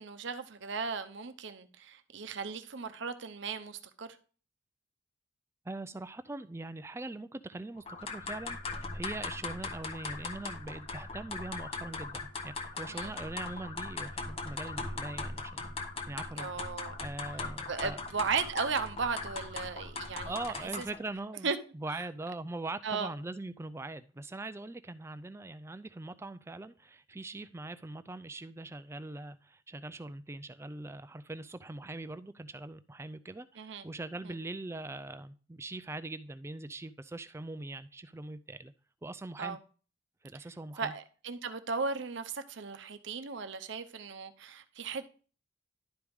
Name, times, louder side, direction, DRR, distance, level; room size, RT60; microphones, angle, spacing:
voice 1, 0.0-4.1 12.9-13.1 16.4-17.0 17.7-20.8 21.4-21.6 21.9-22.0 22.8-23.1 33.6-33.8 34.2-34.3 39.4-39.6 40.8-45.1, right 5 dB, 60° right, 0.7 m, -36 dB
voice 2, 5.7-16.5 17.0-18.0 20.3-38.7 39.0-39.6 40.2-40.9, right 2 dB, 15° right, 0.3 m, -42 dB
sound 1, 7.9-21.0, left 3 dB, 30° left, 0.7 m, -39 dB
11.0 x 4.8 x 3.5 m
head